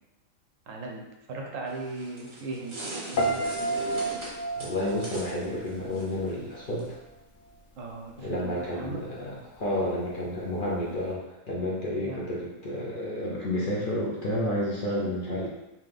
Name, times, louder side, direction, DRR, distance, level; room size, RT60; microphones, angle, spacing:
voice 1, 0.7-1.0 1.3-3.8 7.8-9.0 12.0-12.2 15.3-15.5, right 3 dB, 70° right, 1 dB, 1.0 m, -38 dB
sound 1, 1.7-6.9, right 3 dB, 40° right, 0.4 m, -40 dB
Piano, 3.2-6.3 6.5-7.0, right 1 dB, 85° left, 0.4 m, -31 dB
voice 2, 4.6-7.0 8.2-15.5, left 1 dB, 50° left, -5 dB, 0.7 m, -30 dB
3.7 x 2.9 x 3.3 m, 0.95 s
omnidirectional pair, 1.5 m